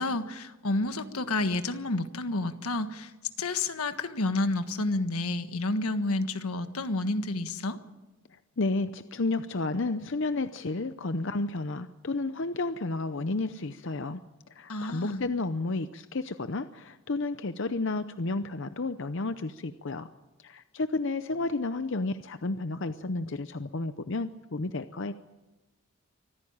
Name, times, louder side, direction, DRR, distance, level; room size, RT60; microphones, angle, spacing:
voice 1, 0.0-3.1 3.4-7.8 14.7-15.2, left 2 dB, 85° left, 9 dB, 1.5 m, -30 dB
voice 2, 8.6-14.2 14.5-20.1 20.4-25.1, left 3 dB, 55° left, 11 dB, 0.7 m, -31 dB
25.0 x 15.5 x 8.8 m, 1.1 s
head